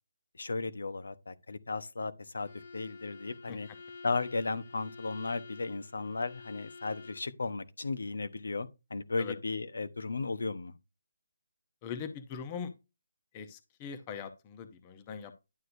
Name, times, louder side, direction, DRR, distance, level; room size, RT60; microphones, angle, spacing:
voice 1, 0.4-3.7 4.0-10.7, left 3 dB, 85° left, 1.1 m, -35 dB
Bowed string instrument, 2.4-7.3, left 4 dB, 50° left, 1.9 m, -50 dB
voice 2, 11.8-12.7 13.3-15.3, left 7 dB, 20° left, 0.8 m, -41 dB
11.5 x 6.5 x 2.7 m
hypercardioid pair, 170°, 0 cm